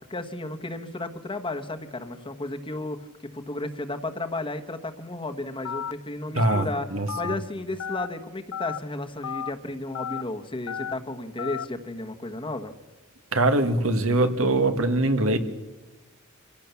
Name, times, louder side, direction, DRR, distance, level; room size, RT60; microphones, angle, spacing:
voice 1, 0.1-3.1 3.3-6.9 7.1-12.7, left 2 dB, 25° left, 6 dB, 1.3 m, -33 dB
Telephone, 5.6-5.9 6.4-6.6 7.1-7.3 7.8-8.1 8.5-8.8 9.2-9.5 9.9-10.2 10.7-10.9 11.4-11.6, left 7 dB, 90° left, 0.7 m, -32 dB
voice 2, 6.3-7.1 13.3-15.4, right 2 dB, 70° right, 8 dB, 1.7 m, -22 dB
25.5 x 16.5 x 7.0 m, 1.1 s
head